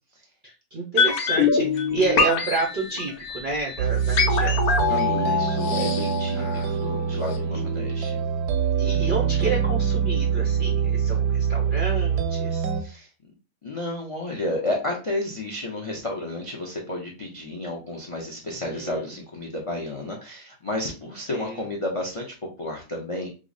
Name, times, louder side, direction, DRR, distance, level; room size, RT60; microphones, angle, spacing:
voice 1, 0.4-5.4 6.3-7.0 7.5-7.6 8.8-13.0 18.5-19.1 21.3-21.6, right 3 dB, 60° right, -1 dB, 0.5 m, -30 dB
sound 1, 1.0-7.0 7.3-7.4, left 5 dB, 70° left, 1.2 m, -24 dB
sound 2, 3.8-12.8, right 7 dB, 90° right, 1.1 m, -24 dB
voice 2, 4.9-8.2 12.8-13.1 13.6-23.3, left 1 dB, 55° left, 0 dB, 0.3 m, -31 dB
5.1 x 2.0 x 2.5 m, 0.33 s
omnidirectional pair, 1.6 m